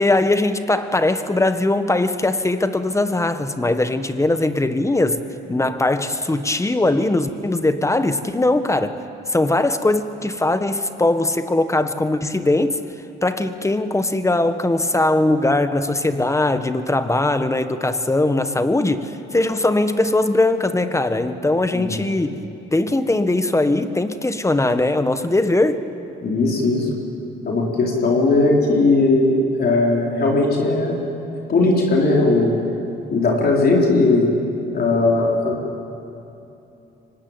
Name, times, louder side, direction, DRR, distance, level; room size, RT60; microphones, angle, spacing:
voice 1, 0.0-5.2 5.5-9.0 9.3-12.8 13.2-22.4 22.7-25.8, left 2 dB, 15° left, 10 dB, 1.4 m, -20 dB
voice 2, 26.2-26.9 27.4-31.0 31.5-32.5 33.1-34.3 34.7-35.6, left 2 dB, 50° left, -1 dB, 4.1 m, -18 dB
24.5 x 20.0 x 9.0 m, 2.9 s
cardioid pair, 90°, 20 cm